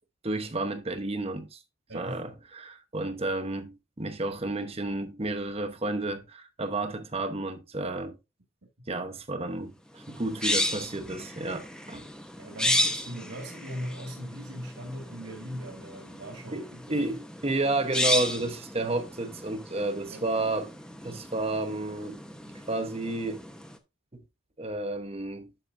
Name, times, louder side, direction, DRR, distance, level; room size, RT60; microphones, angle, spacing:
voice 1, 0.2-1.6 1.9-8.2 8.9-12.1 16.5-20.7 21.0-22.2 22.7-23.4 24.1-24.2 24.6-25.5, right 2 dB, 30° right, 1.0 m, -31 dB
voice 2, 1.9-2.3 12.4-17.2 20.1-20.3, equal, 65° right, 2.0 m, -39 dB
sound 1, 10.0-23.8, left 1 dB, 5° left, 0.7 m, -34 dB
9.9 x 6.5 x 2.6 m
head